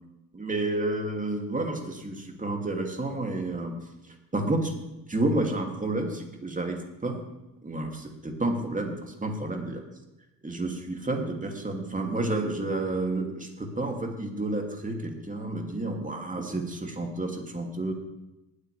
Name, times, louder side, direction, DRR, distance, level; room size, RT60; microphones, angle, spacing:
voice 1, 0.3-3.8 4.3-4.7 5.1-7.2 7.6-9.8 10.4-17.9, right 2 dB, 15° right, 2 dB, 2.6 m, -30 dB
19.5 x 8.4 x 3.4 m, 0.96 s
hypercardioid pair, 60°, 50 cm